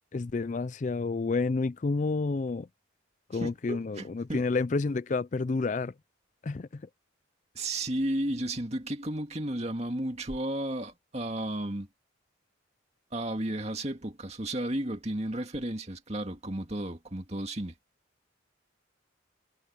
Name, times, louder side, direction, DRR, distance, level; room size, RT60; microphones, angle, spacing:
voice 1, 0.1-2.7 3.3-5.9 6.4-6.8, left 3 dB, 40° left, 0.4 m, -29 dB
voice 2, 3.4-4.4 7.5-11.9 13.1-17.7, right 1 dB, 35° right, 2.2 m, -33 dB
head